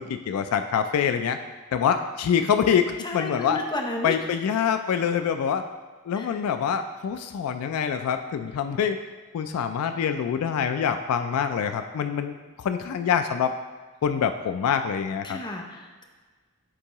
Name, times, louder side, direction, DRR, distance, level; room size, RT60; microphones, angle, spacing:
voice 1, 0.0-1.4 1.7-3.6 4.0-5.7 6.1-9.0 9.3-13.5 14.0-15.4, left 7 dB, 70° left, 9 dB, 0.3 m, -25 dB
voice 2, 3.0-4.1 6.1-6.4 15.2-16.0, left 2 dB, 20° left, 2 dB, 0.6 m, -33 dB
9.8 x 3.6 x 3.0 m, 1.4 s
head